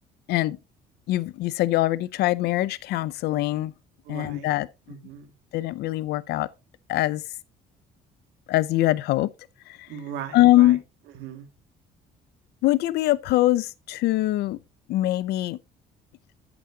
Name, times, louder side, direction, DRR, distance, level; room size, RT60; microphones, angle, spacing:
voice 1, 1.1-3.7 4.1-4.7 5.5-6.5 6.9-7.2 8.5-9.3 9.7-9.9 10.3-10.8 12.6-14.6 14.9-15.6, left 16 dB, 75° left, 0.5 m, -23 dB
voice 2, 4.1-4.5 4.9-5.3 9.9-10.8 11.1-11.5, right 9 dB, 85° right, 2.1 m, -38 dB
11.0 x 8.5 x 2.8 m
cardioid pair, 110°, 17 cm